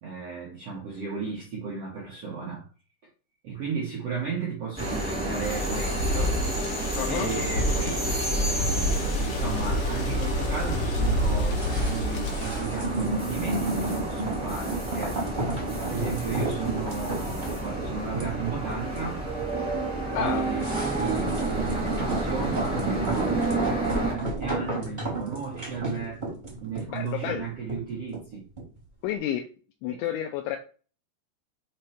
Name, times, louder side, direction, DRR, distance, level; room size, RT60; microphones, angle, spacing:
voice 1, 0.0-2.7 3.4-6.4 7.1-15.2 15.8-19.3 20.1-26.2 26.6-28.5 29.9-30.1, right 5 dB, 90° right, 1.3 m, -35 dB
sound 1, 4.8-24.1, right 1 dB, 5° right, 1.0 m, -31 dB
sound 2, 5.4-12.6, left 1 dB, 65° left, 2.3 m, -28 dB
voice 2, 7.0-7.3 20.1-20.5 26.9-27.5 29.0-29.5 29.8-30.6, left 10 dB, 80° left, 2.8 m, -30 dB
sound 3, 11.5-28.8 29.1-29.2, right 2 dB, 30° right, 0.8 m, -32 dB
7.4 x 3.3 x 4.4 m
omnidirectional pair, 5.7 m